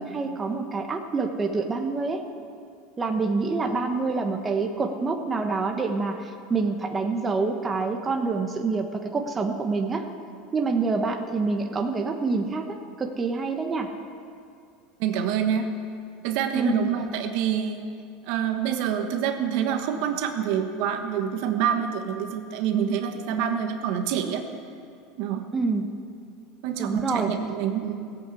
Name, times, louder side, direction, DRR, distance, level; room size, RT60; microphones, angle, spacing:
voice 1, 0.0-2.2 3.0-10.0 10.5-13.9 16.5-16.9 25.5-25.9 26.8-27.3, right 4 dB, 20° right, 4 dB, 1.2 m, -26 dB
voice 2, 15.0-15.7 16.2-17.9 18.3-24.4 25.2-25.4 26.6-28.1, right 8 dB, 65° right, 6 dB, 1.2 m, -27 dB
16.0 x 8.3 x 8.3 m, 2.4 s
supercardioid pair, 120°, 0 cm